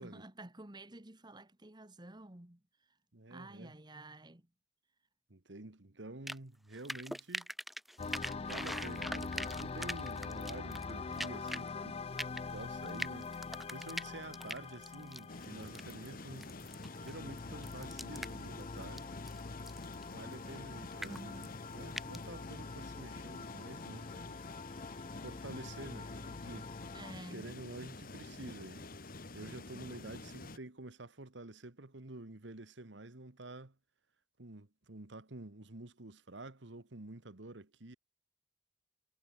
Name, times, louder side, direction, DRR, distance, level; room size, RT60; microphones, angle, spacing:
voice 1, 0.0-2.6 3.3-4.4 21.0-21.6 26.9-27.5, right 1 dB, 25° right, 1.7 m, -50 dB
voice 2, 3.1-3.7 5.3-7.5 8.5-12.0 12.3-13.4 13.7-16.5 16.9-19.1 20.1-21.2 21.7-24.4 25.2-26.7 27.3-28.8 29.3-33.7 34.4-38.0, right 2 dB, 80° right, 1.7 m, -49 dB
sound 1, 6.3-6.4 6.7-11.7 12.2-16.1 16.4-17.1 17.4-20.0 20.3-20.6 20.9-21.5 21.7-22.2, equal, ahead, 0.8 m, -42 dB
sound 2, 8.0-27.1, left 4 dB, 35° left, 0.5 m, -44 dB
sound 3, 15.3-30.6, left 2 dB, 50° left, 1.6 m, -48 dB
head